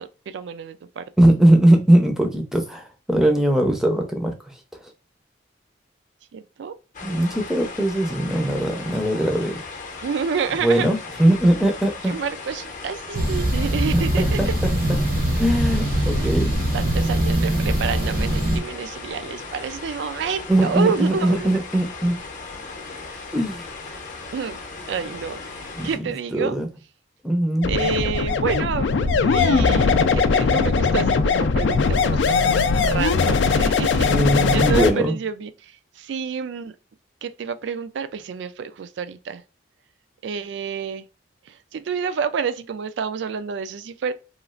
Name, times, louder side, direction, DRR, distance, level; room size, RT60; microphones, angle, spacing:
voice 1, 0.0-1.1 6.3-6.8 10.0-10.9 12.1-14.5 16.0-16.3 16.7-21.5 23.1-23.2 24.3-24.6 24.9-26.6 27.7-32.5 32.8-34.1 34.5-36.8 37.2-39.4 40.2-41.1 41.5-44.1, right 6 dB, 70° right, 0.3 m, -29 dB
voice 2, 1.2-4.9 7.0-9.6 10.6-12.2 13.9-14.5 15.4-16.7 20.5-22.2 23.3-23.7 25.8-26.7 27.2-27.7 34.1-35.1, right 1 dB, ahead, 0.5 m, -20 dB
sound 1, 6.9-26.0, left 4 dB, 40° left, 0.7 m, -37 dB
sound 2, 13.1-18.6, right 1 dB, 50° right, 0.7 m, -22 dB
sound 3, 27.6-34.9, left 4 dB, 70° left, 0.3 m, -20 dB
3.1 x 2.4 x 2.3 m
head